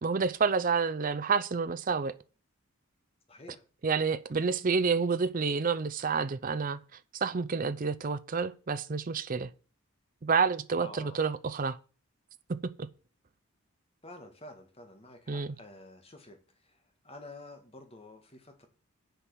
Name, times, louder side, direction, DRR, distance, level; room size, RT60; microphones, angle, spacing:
voice 1, 0.0-2.1 3.8-6.8 7.1-9.5 10.2-11.8 12.5-12.9 15.3-15.6, right 5 dB, 35° right, 0.5 m, -29 dB
voice 2, 3.3-3.6 10.8-11.2 14.0-18.7, left 2 dB, 25° left, 1.6 m, -49 dB
7.4 x 6.8 x 6.2 m
head